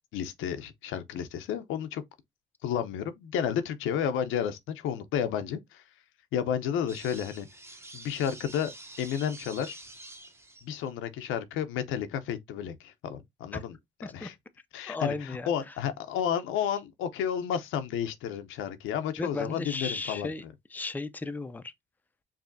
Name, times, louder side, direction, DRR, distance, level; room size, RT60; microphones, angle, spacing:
voice 1, 0.1-2.0 2.6-5.8 6.3-7.5 7.9-8.7 9.0-9.8 10.6-13.8 14.1-14.3 14.7-20.5, left 9 dB, 90° left, 0.6 m, -31 dB
sound 1, 6.9-10.9, right 2 dB, 15° right, 0.8 m, -47 dB
voice 2, 14.9-15.8 19.2-20.4 20.7-21.7, left 3 dB, 10° left, 0.4 m, -35 dB
4.9 x 2.7 x 2.6 m
cardioid pair, 90°, 20 cm